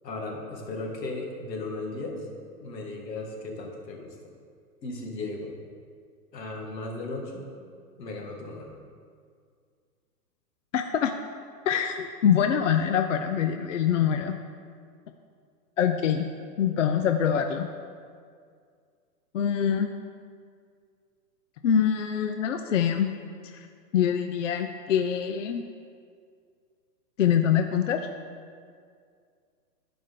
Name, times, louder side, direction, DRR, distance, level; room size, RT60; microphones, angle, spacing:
voice 1, 0.0-2.3 2.6-4.2 4.8-5.5 6.3-7.5 8.0-8.7, left 2 dB, 75° left, 0 dB, 2.2 m, -36 dB
voice 2, 10.7-11.1 11.7-14.3 15.8-16.3 16.6-17.7 19.3-19.9 21.6-23.1 23.5-23.7 23.9-25.6 27.2-28.0, left 8 dB, 50° left, 6 dB, 0.5 m, -24 dB
15.0 x 5.1 x 3.7 m, 2.2 s
hypercardioid pair, 160°, 50 cm